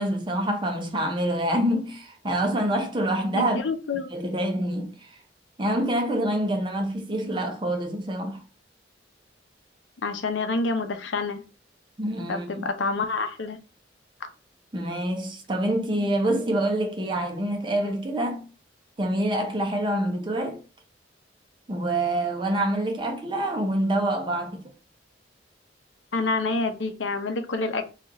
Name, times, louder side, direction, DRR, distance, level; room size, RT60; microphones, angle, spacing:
voice 1, 0.0-3.6 4.1-5.2 5.6-8.4 12.0-12.7 14.7-18.4 19.0-20.6 21.7-24.6, right 1 dB, 25° right, 0.6 m, -26 dB
voice 2, 3.3-4.1 10.0-11.4 12.3-13.6 26.1-27.8, left 3 dB, 90° left, 0.6 m, -27 dB
3.0 x 2.4 x 3.6 m
head